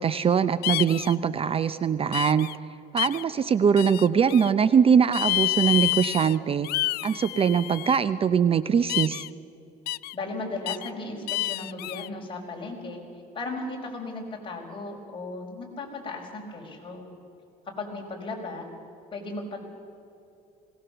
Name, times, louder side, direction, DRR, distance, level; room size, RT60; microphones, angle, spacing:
voice 1, 0.0-2.5 2.9-6.7 7.0-9.3, right 7 dB, 35° right, 14 dB, 0.5 m, -22 dB
sound 1, 0.6-1.1 2.1-2.5 3.0-3.2 3.8-4.5 5.1-6.3 6.6-8.0 8.9-9.3 9.9-10.1 10.7-10.9 11.3-12.1, left 17 dB, 70° left, 0.4 m, -29 dB
voice 2, 10.1-13.0 13.3-17.1 17.7-18.7 19.1-19.6, left 2 dB, 30° left, 0 dB, 4.8 m, -36 dB
21.0 x 18.5 x 6.9 m, 2.8 s
cardioid pair, 110°, 17 cm